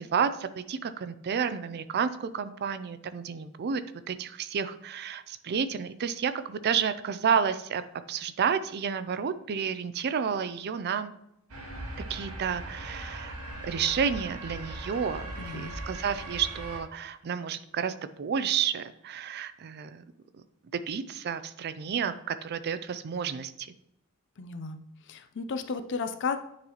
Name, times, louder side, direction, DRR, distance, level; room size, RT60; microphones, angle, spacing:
voice 1, 0.0-7.8 8.1-11.1 12.1-13.4 13.6-20.0 20.7-23.7, right 7 dB, 50° right, 13 dB, 0.4 m, -30 dB
sound 1, 11.5-16.8, right 1 dB, 75° right, 1.1 m, -39 dB
voice 2, 15.4-15.7 24.4-24.8 25.0-26.4, left 5 dB, 55° left, 9 dB, 0.5 m, -33 dB
9.6 x 4.0 x 3.0 m, 0.80 s
head